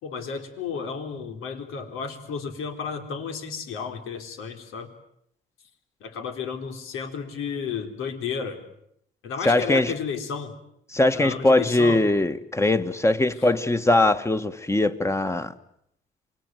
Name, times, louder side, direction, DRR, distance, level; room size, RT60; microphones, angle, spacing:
voice 1, 0.0-4.9 6.0-8.6 9.2-10.5 11.1-12.0 13.4-13.5, left 6 dB, 90° left, 3.9 m, -32 dB
voice 2, 9.4-9.9 10.9-15.5, left 2 dB, 15° left, 1.5 m, -21 dB
27.5 x 22.5 x 9.2 m
cardioid pair, 115°, 21 cm